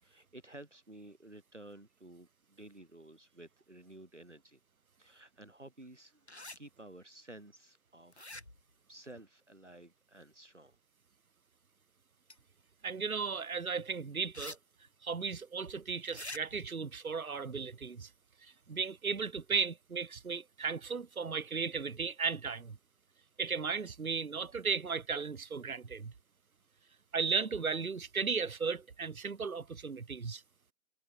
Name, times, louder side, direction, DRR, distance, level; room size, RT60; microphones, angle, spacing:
voice 1, 0.0-4.6 5.0-8.3 8.9-10.8 26.7-26.9, right 1 dB, 55° right, 4.4 m, -53 dB
sound 1, 6.3-6.6 8.1-8.7 12.3-12.4 14.3-14.6 14.9-15.0 16.1-16.4, left 2 dB, 50° left, 3.1 m, -45 dB
voice 2, 12.8-14.6 15.0-18.1 18.4-22.8 23.4-26.1 27.1-30.4, right 5 dB, 75° right, 0.8 m, -35 dB
figure-of-eight pair, 170°, 43 cm